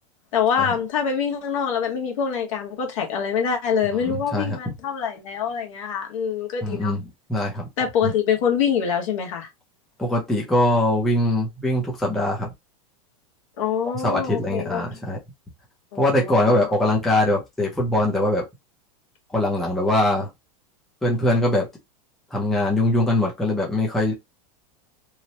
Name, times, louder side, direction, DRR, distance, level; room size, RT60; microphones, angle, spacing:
voice 1, 0.3-6.9 7.8-9.5 13.6-14.8 15.9-16.6, left 7 dB, 60° left, 1.1 m, -25 dB
voice 2, 4.1-4.6 6.6-7.7 8.0-8.1 10.0-12.5 14.0-15.2 16.0-18.5 19.3-20.3 21.0-21.7 22.3-24.1, left 1 dB, ahead, 0.6 m, -22 dB
3.0 x 2.1 x 2.8 m
supercardioid pair, 165°, 19 cm